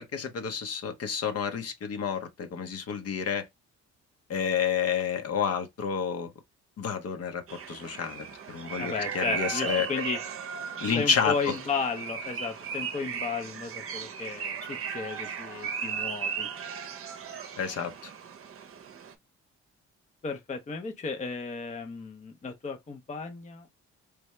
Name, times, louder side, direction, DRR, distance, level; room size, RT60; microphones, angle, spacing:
voice 1, 0.0-3.4 4.3-6.3 6.8-9.9 10.8-11.3 17.6-18.1, left 7 dB, 55° left, 0.8 m, -30 dB
sound 1, 7.5-19.1, right 7 dB, 45° right, 0.7 m, -36 dB
voice 2, 8.8-10.2 10.9-16.5 20.2-23.7, left 5 dB, 25° left, 0.6 m, -34 dB
3.3 x 2.7 x 3.1 m
cardioid pair, 90°, 30 cm